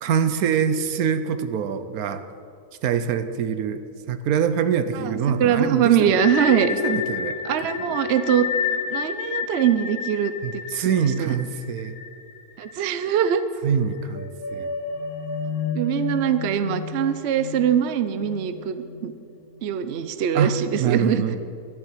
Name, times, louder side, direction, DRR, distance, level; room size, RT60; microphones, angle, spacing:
voice 1, 0.0-2.2 2.8-6.2 6.7-7.4 7.8-8.0 10.4-11.9 13.6-14.7 20.3-21.4, right 7 dB, 70° right, 11 dB, 1.1 m, -24 dB
voice 2, 4.9-6.7 7.4-8.5 8.9-11.4 12.6-13.4 15.7-19.1 19.6-21.3, right 9 dB, 55° right, 11 dB, 0.8 m, -22 dB
sound 1, 6.2-13.0 13.3-13.4 14.0-19.3, left 6 dB, 70° left, 1.5 m, -30 dB
12.0 x 7.3 x 9.5 m, 2.5 s
omnidirectional pair, 1.6 m